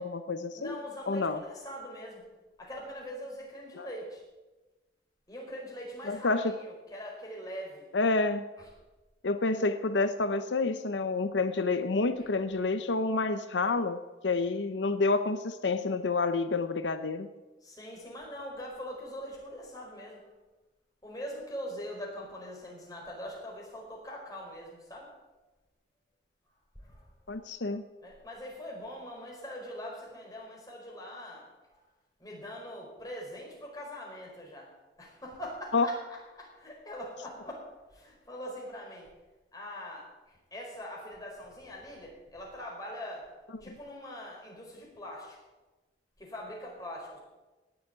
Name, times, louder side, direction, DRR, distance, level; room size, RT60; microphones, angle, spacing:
voice 1, 0.0-0.8 1.1-1.4 3.8-3.9 6.1-6.5 7.9-8.5 9.2-17.3 27.3-27.8 35.7-35.9, left 3 dB, 90° left, 10 dB, 0.8 m, -29 dB
voice 2, 0.5-2.2 2.6-4.2 5.3-7.8 8.6-8.7 17.6-20.2 21.0-25.1 26.8-27.4 28.0-31.8 32.2-34.7 35.0-36.0 36.4-37.6 37.9-39.1 39.5-43.3 43.6-45.4 46.2-47.2, equal, 20° left, -2 dB, 4.9 m, -42 dB
18.5 x 7.2 x 9.0 m, 1.1 s
head